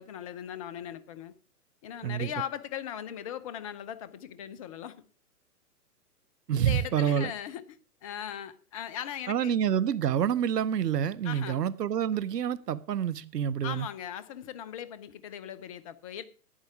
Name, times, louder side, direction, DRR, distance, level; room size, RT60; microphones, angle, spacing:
voice 1, 0.0-1.3 1.8-5.0 6.5-9.5 11.2-11.6 13.6-16.3, left 10 dB, 25° left, 0.5 m, -39 dB
voice 2, 6.5-7.3 9.3-13.9, right 9 dB, 85° right, 0.7 m, -27 dB
11.0 x 9.4 x 4.7 m
figure-of-eight pair, 120°, 47 cm